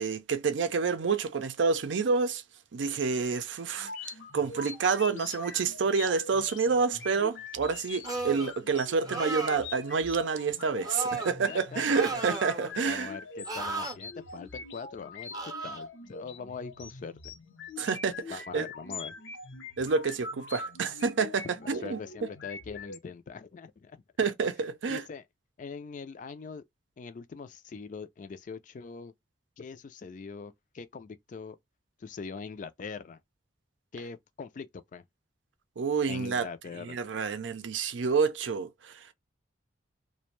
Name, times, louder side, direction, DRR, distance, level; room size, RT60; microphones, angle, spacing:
voice 1, 0.0-2.4 2.7-3.9 4.3-13.1 17.8-18.7 19.8-22.0 24.2-25.0 35.8-36.5 36.8-38.9, right 5 dB, 85° right, 0.5 m, -28 dB
sound 1, 3.8-23.0, left 4 dB, 85° left, 0.8 m, -43 dB
sound 2, 8.0-8.5 9.0-9.7 10.8-11.3 11.9-12.7 13.5-14.0 15.3-15.8, right 3 dB, 20° right, 0.6 m, -34 dB
voice 2, 11.2-12.2 12.8-17.3 18.3-19.1 21.6-24.0 24.9-25.2 25.6-26.6 27.0-29.1 29.6-31.6 32.0-33.2 33.9-35.0 36.1-37.0, left 5 dB, 45° left, 0.3 m, -42 dB
2.6 x 2.1 x 3.0 m
head